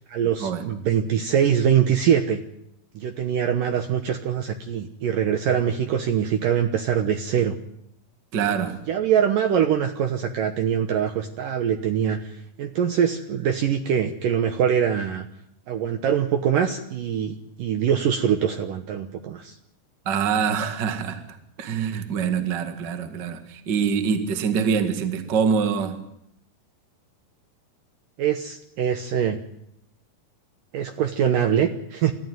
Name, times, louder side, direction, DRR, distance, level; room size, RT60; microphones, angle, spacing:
voice 1, 0.1-2.4 3.0-7.5 8.9-12.3 12.6-15.3 15.7-19.6 28.2-29.4 30.7-32.1, right 8 dB, 70° right, 7 dB, 2.3 m, -23 dB
voice 2, 8.3-8.8 20.1-26.0, right 6 dB, 40° right, 7 dB, 1.7 m, -25 dB
29.0 x 14.0 x 9.4 m, 0.78 s
omnidirectional pair, 4.9 m